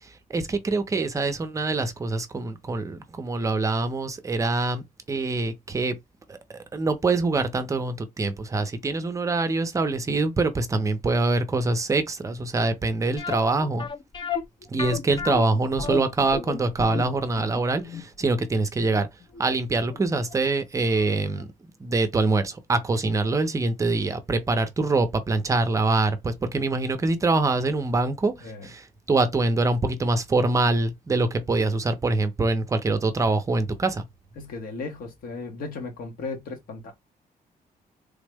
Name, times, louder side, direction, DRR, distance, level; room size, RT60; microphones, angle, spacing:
voice 1, 0.3-6.0 6.3-6.4 6.7-13.9 14.7-19.1 19.4-21.5 21.8-28.3 28.6-34.0, right 3 dB, 20° right, 0.5 m, -24 dB
sound 1, 13.2-20.0 20.3-20.4 21.0-21.1 21.4-21.5, left 5 dB, 30° left, 0.4 m, -33 dB
voice 2, 34.4-36.9, left 3 dB, 70° left, 1.0 m, -36 dB
3.5 x 2.0 x 3.3 m
cardioid pair, 165°, 16 cm